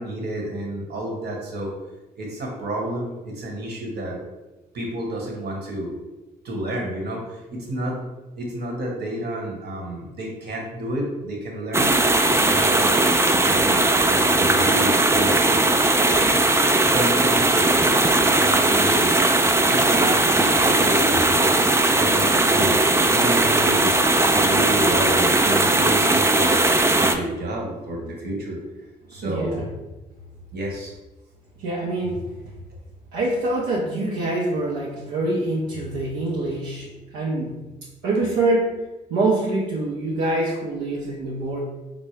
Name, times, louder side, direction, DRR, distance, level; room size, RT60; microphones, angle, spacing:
voice 1, 0.0-1.7 2.2-4.2 4.7-5.9 6.4-11.9 12.3-13.0 13.4-15.3 16.8-17.7 18.2-19.2 19.7-26.6 27.0-28.6 29.1-29.6 30.5-30.9, right 1 dB, 55° right, -1 dB, 1.2 m, -30 dB
sound 1, 11.7-27.2, right 2 dB, 15° right, 0.4 m, -18 dB
voice 2, 29.2-29.7 31.6-32.3 33.1-37.6 38.0-38.8 39.1-41.6, right 2 dB, 80° right, -5 dB, 0.6 m, -25 dB
4.3 x 2.0 x 3.2 m, 1.1 s
hypercardioid pair, 45°, 20 cm